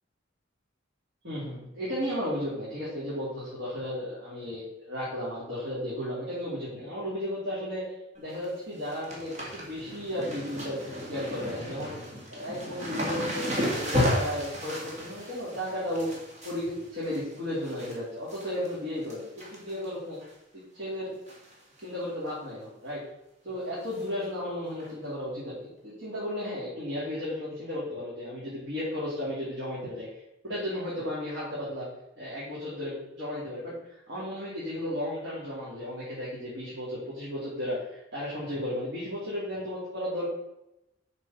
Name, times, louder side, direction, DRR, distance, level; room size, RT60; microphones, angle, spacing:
voice 1, 1.2-10.8 11.1-11.9 12.3-16.1 16.4-20.2 20.5-21.1 21.8-23.0 23.4-30.1 30.4-31.9 32.2-40.3, left 1 dB, 60° right, -8 dB, 3.2 m, -34 dB
sound 1, 8.1-8.5 8.7-17.9 18.3-18.7 19.0-19.9 20.2-20.3 21.3-21.5 21.8-21.9 22.3-22.4 23.9-24.0 24.8-24.9, equal, 35° right, 2.3 m, -33 dB
7.1 x 6.2 x 5.9 m, 0.89 s
head